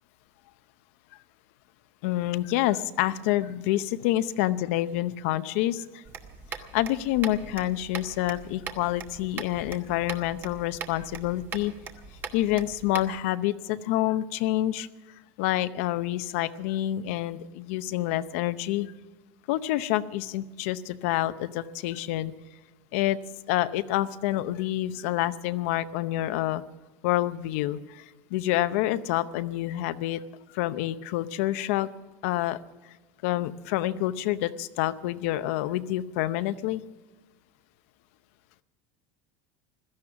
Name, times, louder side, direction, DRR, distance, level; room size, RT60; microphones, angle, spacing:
voice 1, 2.0-6.0 6.5-11.7 12.3-14.9 15.4-18.9 19.5-22.3 22.9-23.2 23.5-26.6 27.0-28.0 28.3-30.2 30.5-31.9 32.2-32.6 33.2-36.8, left 14 dB, 65° left, 14 dB, 0.7 m, -27 dB
sound 1, 6.1-13.2, right 6 dB, 25° right, 1.1 m, -41 dB
16.0 x 13.5 x 5.9 m, 1.2 s
cardioid pair, 175°, 8 cm